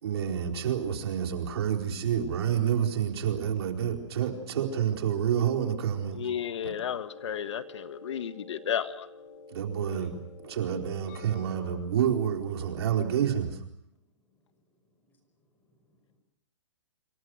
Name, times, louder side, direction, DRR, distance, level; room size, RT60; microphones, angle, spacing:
voice 1, 0.0-6.2 6.6-6.7 9.5-13.6, right 9 dB, 55° right, 3 dB, 4.3 m, -29 dB
voice 2, 6.2-9.1, left 8 dB, 65° left, 11 dB, 1.5 m, -33 dB
sound 1, 6.9-11.9, left 3 dB, 35° left, 3.9 m, -49 dB
voice 3, 14.8-16.2, left 2 dB, 10° left, 6 dB, 5.3 m, -70 dB
27.0 x 24.0 x 6.4 m, 0.76 s
hypercardioid pair, 165°, 16 cm